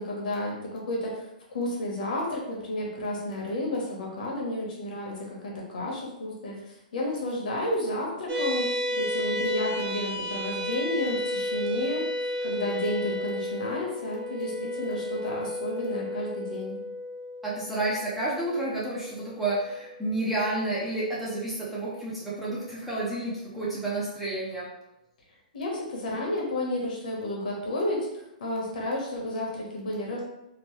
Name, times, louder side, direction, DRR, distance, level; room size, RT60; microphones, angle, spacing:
voice 1, 0.0-6.5 6.9-12.1 12.4-16.8 25.5-30.2, left 1 dB, 70° left, -2 dB, 1.0 m, -31 dB
sound 1, 8.3-20.9, left 1 dB, 25° right, 0.8 m, -33 dB
voice 2, 17.4-24.7, right 2 dB, 5° right, -8 dB, 0.5 m, -30 dB
3.0 x 2.1 x 3.1 m, 0.89 s
hypercardioid pair, 165°, 5 cm